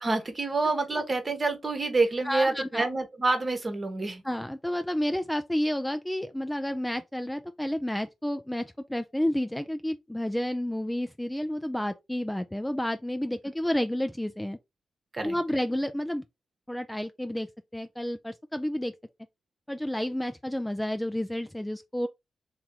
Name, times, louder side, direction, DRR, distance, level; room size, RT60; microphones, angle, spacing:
voice 1, 0.0-4.2 15.1-15.4, right 3 dB, 35° right, 1.0 m, -27 dB
voice 2, 2.3-2.9 4.2-14.6 15.2-16.2 16.7-17.5 17.7-18.9 19.7-22.1, left 1 dB, 10° left, 0.4 m, -30 dB
3.0 x 2.9 x 3.6 m
supercardioid pair, 50°, 0 cm